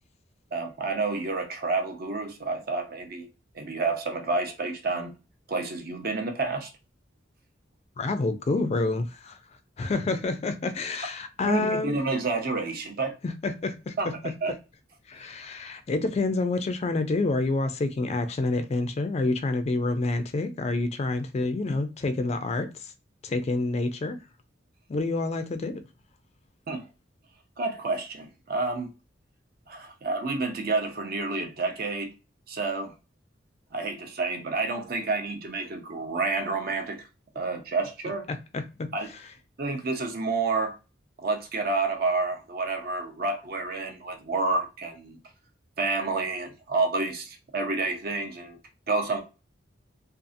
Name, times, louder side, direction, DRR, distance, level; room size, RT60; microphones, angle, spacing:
voice 1, 0.5-3.3 3.5-5.1 5.5-6.7 11.4-13.2 14.0-14.5 26.7-26.9 27.6-28.9 29.7-32.1 32.5-32.9 33.7-37.0 37.3-38.2 38.9-39.1 39.6-40.7 41.2-45.2 45.8-48.6 48.9-49.2, right 3 dB, 55° right, 0.6 m, -29 dB
voice 2, 8.0-9.4 9.8-11.9 13.2-13.9 15.1-22.9 23.2-24.2 24.9-25.8 38.3-38.9, left 3 dB, 35° left, 0.4 m, -28 dB
2.6 x 2.4 x 2.5 m
head